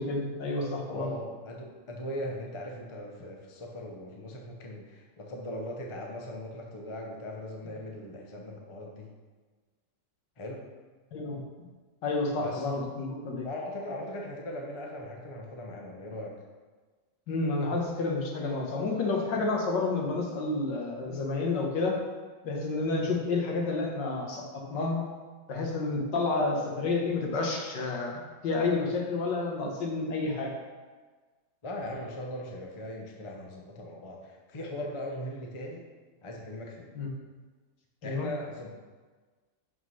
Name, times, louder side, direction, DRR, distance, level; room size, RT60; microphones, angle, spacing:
voice 1, 0.0-1.1 11.1-11.4 12.0-13.5 17.3-22.0 22.4-25.0 25.5-30.5 37.0-37.1 38.0-38.3, left 3 dB, 75° left, 0 dB, 1.9 m, -30 dB
voice 2, 0.9-9.1 10.4-10.7 12.4-12.7 13.4-16.4 31.6-35.9 36.2-36.9 38.0-38.7, left 1 dB, 40° left, 0 dB, 0.4 m, -39 dB
5.9 x 5.6 x 5.5 m, 1.4 s
omnidirectional pair, 1.9 m